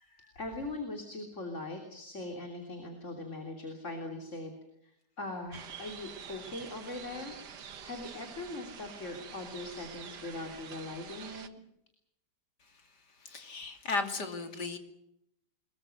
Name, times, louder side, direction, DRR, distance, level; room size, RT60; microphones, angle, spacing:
voice 1, 0.4-4.5 4.8-4.9 5.2-7.4 7.8-11.5, left 2 dB, 40° left, 4 dB, 3.5 m, -40 dB
sound 1, 5.5-11.5, right 7 dB, 70° right, 2.0 m, -47 dB
voice 2, 13.2-14.8, left 3 dB, 70° left, 7 dB, 3.3 m, -35 dB
24.0 x 22.5 x 6.6 m, 0.79 s
omnidirectional pair, 1.9 m